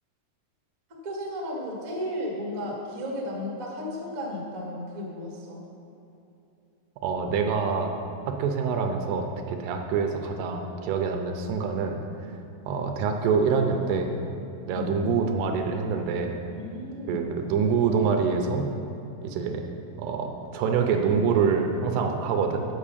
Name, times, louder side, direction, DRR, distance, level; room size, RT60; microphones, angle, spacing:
voice 1, 1.0-5.6 14.7-14.9 16.5-17.2, left 1 dB, 55° right, -4 dB, 0.9 m, -34 dB
voice 2, 7.0-7.9 8.3-12.0 12.7-14.1 14.7-16.3 17.1-18.7 19.2-19.6 20.0-22.7, right 5 dB, 85° right, 4 dB, 2.7 m, -25 dB
8.7 x 5.5 x 6.7 m, 2.8 s
omnidirectional pair, 4.7 m